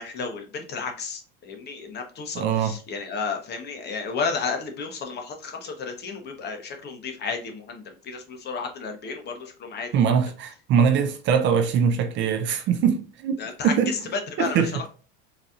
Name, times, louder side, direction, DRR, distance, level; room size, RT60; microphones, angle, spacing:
voice 1, 0.0-10.1 13.4-14.8, left 5 dB, 35° left, 0.8 m, -32 dB
voice 2, 2.3-2.8 9.9-13.9 14.4-14.9, right 7 dB, 40° right, 0.4 m, -22 dB
4.0 x 2.7 x 2.3 m
supercardioid pair, 120°, 30 cm